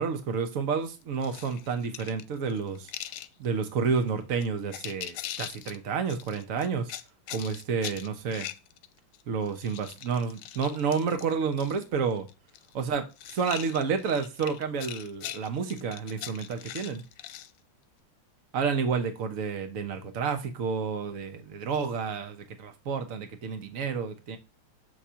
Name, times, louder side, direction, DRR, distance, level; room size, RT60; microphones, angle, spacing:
voice 1, 0.0-2.9 3.4-6.9 7.3-8.5 9.3-12.3 12.7-13.1 13.3-17.0 18.5-24.4, right 5 dB, 50° right, 1.2 m, -30 dB
sound 1, 1.2-3.3 4.0-4.1 4.4-5.8 6.1-9.2 9.5-11.8 12.1-12.7 13.1-17.5, left 12 dB, 80° left, 1.4 m, -41 dB
7.6 x 3.3 x 5.6 m
omnidirectional pair, 2.4 m